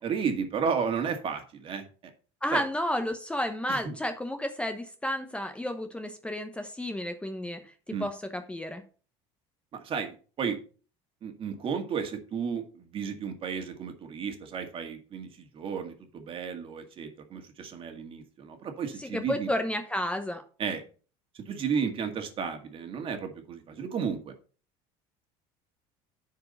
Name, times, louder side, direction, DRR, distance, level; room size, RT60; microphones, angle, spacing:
voice 1, 0.0-1.9 2.5-2.6 3.7-4.0 7.9-8.1 9.7-10.6 11.2-19.5 20.6-20.8 21.3-24.3, right 6 dB, 40° right, 5 dB, 2.0 m, -33 dB
voice 2, 2.4-7.6 8.0-8.8 19.0-20.4, left 1 dB, 10° left, 7 dB, 0.9 m, -31 dB
10.0 x 4.7 x 5.4 m, 0.38 s
supercardioid pair, 110°, 14 cm